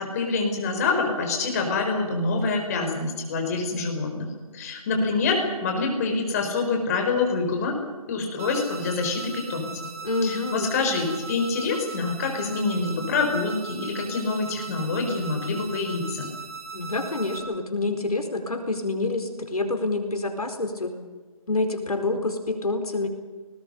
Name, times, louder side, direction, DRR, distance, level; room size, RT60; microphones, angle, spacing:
voice 1, 0.0-7.7 8.1-9.7 10.2-16.3, left 3 dB, 25° left, 3 dB, 4.7 m, -26 dB
sound 1, 8.4-17.4, right 4 dB, 25° right, 2.7 m, -39 dB
voice 2, 10.0-10.7 16.7-20.9 21.5-23.1, left 2 dB, 85° left, 6 dB, 4.6 m, -27 dB
27.5 x 20.0 x 5.5 m, 1.3 s
figure-of-eight pair, 160°, 19 cm